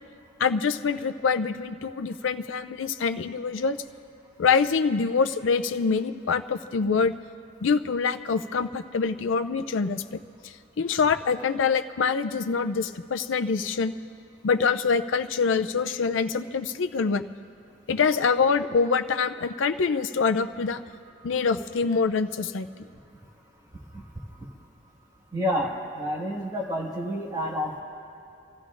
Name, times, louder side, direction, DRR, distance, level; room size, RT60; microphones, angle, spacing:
voice 1, 0.4-3.8 4.4-7.1 7.6-13.9 14.4-17.3 17.9-20.8 21.2-22.7, left 5 dB, 85° left, 9 dB, 0.5 m, -25 dB
voice 2, 25.3-27.8, equal, 20° right, -3 dB, 1.7 m, -29 dB
28.5 x 14.5 x 2.5 m, 2.6 s
head